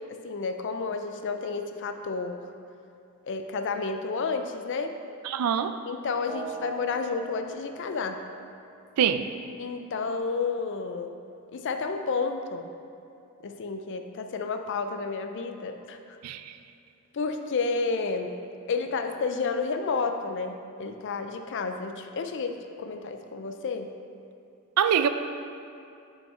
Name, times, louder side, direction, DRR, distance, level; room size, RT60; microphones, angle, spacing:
voice 1, 0.0-2.4 3.3-4.9 5.9-8.2 9.6-11.1 11.5-12.7 13.4-16.2 17.1-18.4 18.7-23.9, left 4 dB, 55° left, 6 dB, 0.4 m, -31 dB
voice 2, 5.2-5.7 9.0-9.3 16.2-16.5 24.8-25.1, right 8 dB, 90° right, 10 dB, 0.4 m, -24 dB
sound 1, 6.2-10.2, right 5 dB, 5° right, 0.7 m, -44 dB
5.7 x 5.3 x 4.3 m, 2.6 s
head